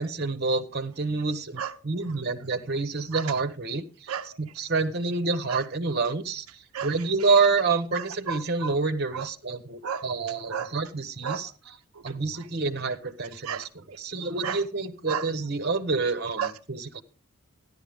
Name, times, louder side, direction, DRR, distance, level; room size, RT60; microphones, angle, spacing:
voice 1, 0.0-4.1 4.4-6.4 6.8-11.5 12.0-13.6 14.0-16.4 16.7-17.0, right 4 dB, 50° right, 10 dB, 0.9 m, -27 dB
voice 2, 4.1-4.4 5.5-5.6 6.7-7.1 7.9-8.7 9.1-9.3 9.8-10.1 10.5-10.7 11.2-12.5 13.4-13.7 14.4-14.6 15.1-15.3 16.0-16.1 16.4-16.5, right 7 dB, 80° right, 7 dB, 0.5 m, -34 dB
13.0 x 11.0 x 3.5 m, 0.34 s
head